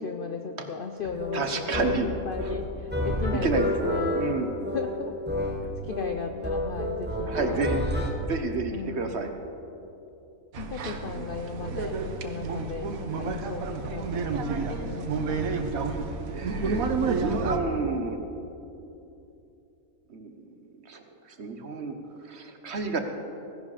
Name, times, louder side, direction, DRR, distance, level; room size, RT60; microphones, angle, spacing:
voice 1, 0.0-4.2 4.7-5.1 5.8-7.8 8.7-9.2 10.6-15.5, left 5 dB, 60° left, 6 dB, 0.5 m, -36 dB
sound 1, 1.0-8.1, left 1 dB, 5° right, 1.3 m, -30 dB
voice 2, 1.3-2.1 2.4-2.5 3.3-3.7 4.1-4.5 7.3-7.9 8.2-9.3 11.2-11.3 15.9-16.0 16.3-18.2 20.1-22.0 22.2-23.0, right 4 dB, 50° right, 6 dB, 1.1 m, -31 dB
sound 2, 10.5-17.6, right 4 dB, 70° right, 1.3 m, -30 dB
16.5 x 11.0 x 4.9 m, 2.9 s
omnidirectional pair, 1.6 m